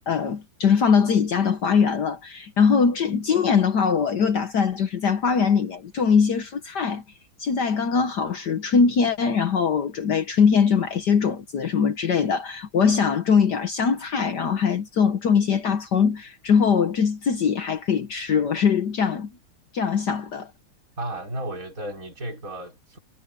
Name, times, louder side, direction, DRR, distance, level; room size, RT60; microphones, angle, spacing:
voice 1, 0.1-7.0 7.4-19.3 19.7-20.5, left 6 dB, 55° left, 1.6 m, -22 dB
voice 2, 21.0-23.0, right 1 dB, 40° right, 5.8 m, -33 dB
omnidirectional pair, 2.3 m